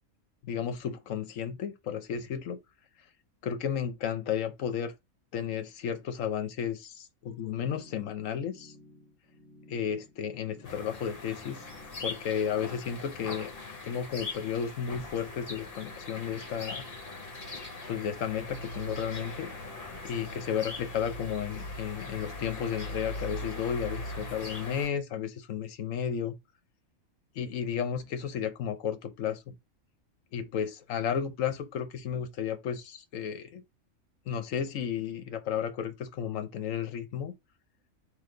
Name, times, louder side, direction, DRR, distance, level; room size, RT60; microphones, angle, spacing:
voice 1, 0.4-2.6 3.4-4.9 5.3-8.7 9.7-11.7 12.0-13.5 13.8-16.8 17.9-19.5 20.0-26.4 27.3-29.5 30.3-33.6 34.3-37.3, left 8 dB, 75° left, 1.1 m, -33 dB
sound 1, 7.8-12.8, left 1 dB, 10° left, 0.8 m, -56 dB
sound 2, 10.6-24.9, left 2 dB, 45° left, 1.3 m, -40 dB
4.0 x 2.9 x 3.8 m
omnidirectional pair, 1.4 m